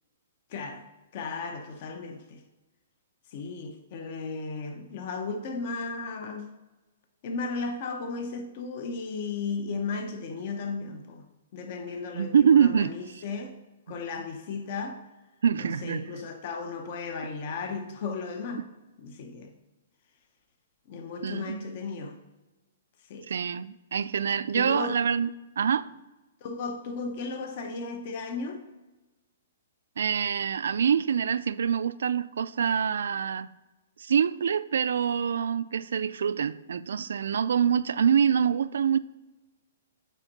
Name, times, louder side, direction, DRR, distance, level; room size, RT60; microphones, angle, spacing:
voice 1, 0.5-0.9 1.1-2.4 3.3-6.5 7.2-11.2 11.5-13.5 13.9-15.0 15.5-18.7 19.0-19.5 20.9-22.2 23.1-23.3 24.5-25.0 26.4-28.6, left 4 dB, 40° left, 0.7 m, -35 dB
voice 2, 12.1-12.9 15.4-16.1 21.2-21.6 23.3-25.9 30.0-33.5 34.0-39.0, right 7 dB, 80° right, 0.3 m, -25 dB
8.2 x 4.4 x 4.1 m
hypercardioid pair, 170°, 0 cm